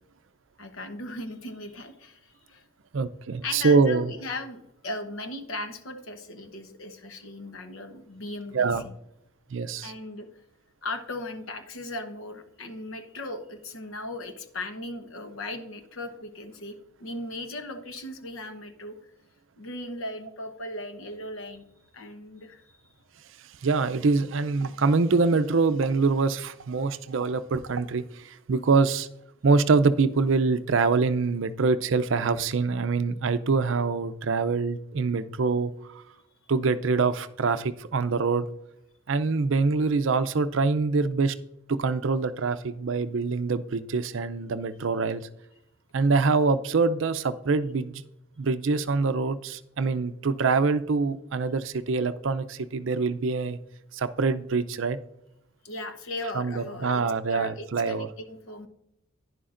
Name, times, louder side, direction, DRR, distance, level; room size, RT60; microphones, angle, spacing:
voice 1, 0.6-2.6 3.4-8.9 9.8-10.3 10.8-19.0 19.6-21.7 21.9-22.6 55.6-58.7, left 2 dB, 75° left, 8 dB, 1.0 m, -37 dB
voice 2, 2.9-4.1 8.5-8.8 9.5-9.9 23.6-29.1 29.4-35.7 36.5-38.5 39.1-41.3 41.7-45.2 45.9-48.0 48.4-53.6 53.9-55.0 56.3-58.1, right 4 dB, 65° right, 11 dB, 0.5 m, -24 dB
11.0 x 10.0 x 2.5 m, 0.80 s
head